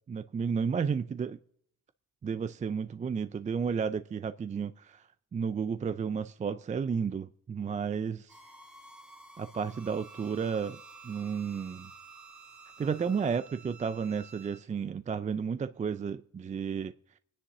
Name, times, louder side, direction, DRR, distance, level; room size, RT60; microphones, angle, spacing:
voice 1, 0.1-1.4 2.2-5.0 5.3-8.3 9.4-10.8 11.0-11.9 12.8-16.9, right 6 dB, 25° right, 0.4 m, -32 dB
sound 1, 8.3-13.4, equal, 5° right, 1.4 m, -54 dB
Bowed string instrument, 9.7-14.6, right 7 dB, 70° right, 1.6 m, -53 dB
26.5 x 9.9 x 2.7 m
cardioid pair, 90°, 30 cm